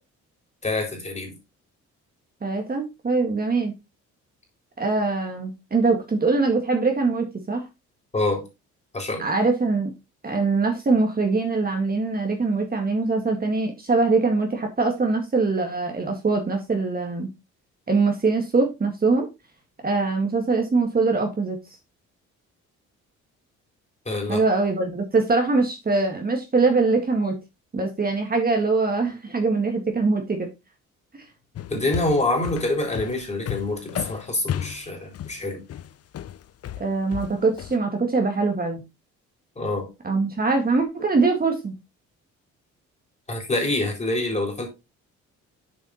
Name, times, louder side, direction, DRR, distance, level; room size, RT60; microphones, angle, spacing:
voice 1, 0.6-1.4 8.1-8.4 8.9-9.3 24.1-24.4 31.7-35.6 39.6-39.9 43.3-44.7, left 2 dB, 20° left, 4.0 m, -26 dB
voice 2, 2.4-3.7 4.8-7.6 9.2-9.9 10.2-17.3 17.9-19.3 19.8-21.6 24.3-27.3 27.7-30.5 36.8-38.8 40.0-41.7, right 3 dB, 30° right, 2.0 m, -23 dB
sound 1, 31.6-37.8, left 11 dB, 55° left, 0.6 m, -33 dB
7.4 x 4.9 x 4.3 m
cardioid pair, 90°, 30 cm